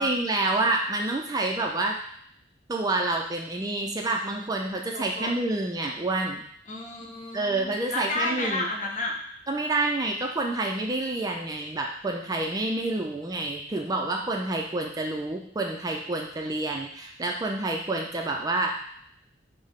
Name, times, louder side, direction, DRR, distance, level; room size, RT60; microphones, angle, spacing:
voice 1, 0.0-2.0 2.7-6.4 7.3-8.7 9.5-18.8, right 2 dB, 20° right, 1 dB, 0.3 m, -28 dB
voice 2, 4.9-5.3 6.7-9.1, left 2 dB, 45° left, -1 dB, 0.8 m, -31 dB
5.4 x 2.0 x 3.6 m, 0.67 s
head